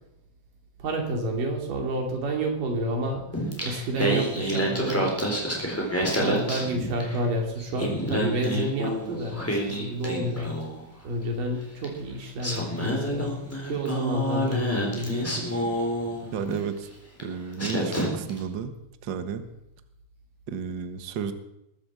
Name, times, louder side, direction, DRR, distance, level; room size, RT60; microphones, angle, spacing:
voice 1, 0.8-3.3 3.6-5.2 6.0-10.6 11.0-15.5, right 1 dB, 90° right, 2 dB, 4.5 m, -30 dB
Singing, 3.3-7.3 7.6-10.8 11.8-11.9 12.4-16.6 17.2-17.3 17.6-18.4, equal, 5° left, 3.3 m, -28 dB
voice 2, 16.3-16.9 17.2-18.7 19.0-19.4 20.5-21.3, right 7 dB, 55° right, 9 dB, 1.4 m, -32 dB
21.0 x 8.6 x 7.3 m, 0.86 s
omnidirectional pair, 3.7 m